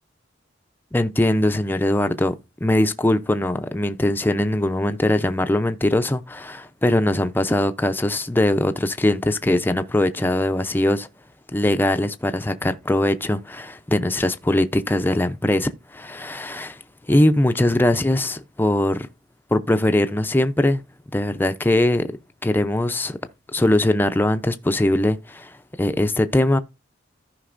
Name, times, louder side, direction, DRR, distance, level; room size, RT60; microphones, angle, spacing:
voice 1, 0.9-2.3 2.6-11.1 11.5-16.8 17.1-19.1 19.5-20.8 21.1-22.1 22.4-23.2 23.5-25.5 25.8-26.6, left 1 dB, 10° left, 0.5 m, -21 dB
14.5 x 5.2 x 2.5 m
head